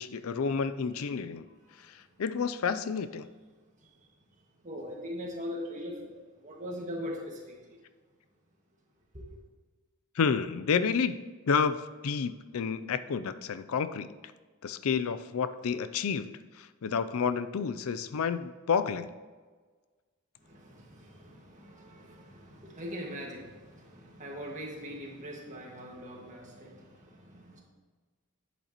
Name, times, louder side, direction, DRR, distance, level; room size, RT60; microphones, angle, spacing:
voice 1, 0.0-1.4 2.2-3.3 10.2-11.2 11.5-11.8 12.0-14.1 14.6-16.3 16.6-19.1, left 6 dB, 75° left, 13 dB, 0.4 m, -30 dB
voice 2, 1.4-2.2 3.7-7.8 9.1-9.4 20.4-27.6, equal, 35° right, -2 dB, 1.8 m, -42 dB
10.5 x 8.2 x 3.0 m, 1.4 s
head